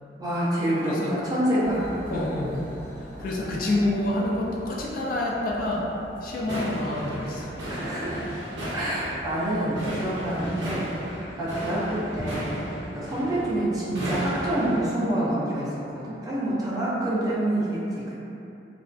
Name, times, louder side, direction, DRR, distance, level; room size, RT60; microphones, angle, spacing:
voice 1, 0.2-2.3 7.7-8.2 8.7-18.1, right 1 dB, 20° right, -8 dB, 0.4 m, -27 dB
sound 1, 1.6-10.4, equal, 15° left, 0.8 m, -42 dB
voice 2, 2.1-2.6 3.2-5.9 6.2-7.5, left 1 dB, 50° left, -4 dB, 0.3 m, -27 dB
sound 2, 6.4-15.0, equal, 90° right, 0.7 m, -34 dB
2.4 x 2.3 x 2.2 m, 2.8 s
head